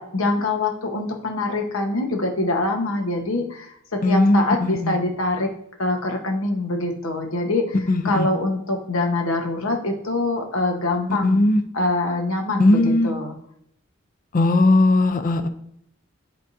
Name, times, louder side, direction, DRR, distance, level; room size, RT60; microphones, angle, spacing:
voice 1, 0.0-5.5 5.8-7.8 8.0-11.4 11.7-13.3, left 2 dB, 80° left, 2 dB, 1.1 m, -24 dB
voice 2, 4.0-5.0 7.9-8.3 11.1-11.6 12.6-13.1 14.3-15.5, left 2 dB, 45° left, 9 dB, 0.5 m, -18 dB
11.0 x 3.6 x 2.6 m, 0.70 s
head